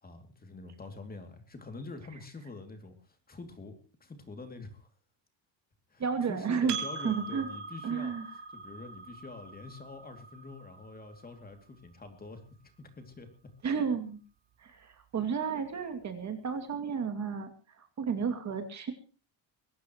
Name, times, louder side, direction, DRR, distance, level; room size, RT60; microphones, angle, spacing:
voice 1, 0.0-4.9 5.9-8.1 8.5-13.3, left 3 dB, 20° left, 6 dB, 2.7 m, -46 dB
voice 2, 6.0-6.8 7.0-7.5 7.8-8.2 13.6-14.2 14.6-17.5 17.8-18.9, right 6 dB, 35° right, 7 dB, 2.6 m, -32 dB
Percussion, 6.7-11.5, right 5 dB, 55° right, 3.9 m, -42 dB
22.0 x 18.0 x 3.1 m, 0.37 s
cardioid pair, 175°, 47 cm